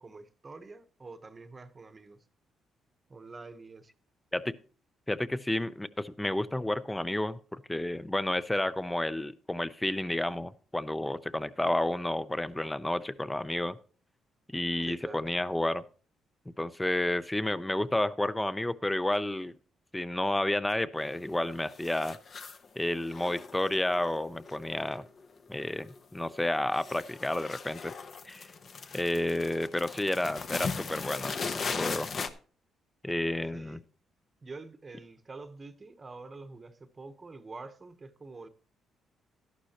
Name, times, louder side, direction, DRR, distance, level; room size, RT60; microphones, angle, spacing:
voice 1, 0.0-2.2 3.1-3.9 14.9-15.3 33.5-33.8 34.4-38.5, right 3 dB, 30° right, 1.0 m, -46 dB
voice 2, 5.1-13.8 14.5-15.8 16.5-19.5 19.9-22.2 22.8-25.0 25.5-27.9 28.3-28.5 28.9-31.3 31.6-32.1 33.0-33.8, left 1 dB, 10° left, 0.6 m, -31 dB
sound 1, 21.0-21.4 21.6-22.7 23.0-25.2 25.5-26.0 26.2-32.3, left 5 dB, 50° left, 1.0 m, -38 dB
12.5 x 11.5 x 2.9 m
cardioid pair, 90°, 0 cm